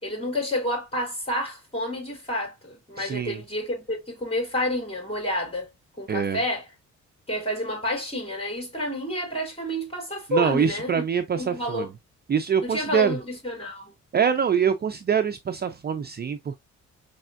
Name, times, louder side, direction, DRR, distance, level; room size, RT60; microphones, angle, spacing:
voice 1, 0.0-5.7 6.0-6.7 7.3-11.0 11.4-11.9 12.6-13.9, left 1 dB, 20° left, 3.8 m, -29 dB
voice 2, 3.0-3.4 6.1-6.4 10.3-11.9 12.3-13.2 14.1-16.6, right 7 dB, 35° right, 0.5 m, -24 dB
5.4 x 3.5 x 2.4 m
cardioid pair, 90°, 30 cm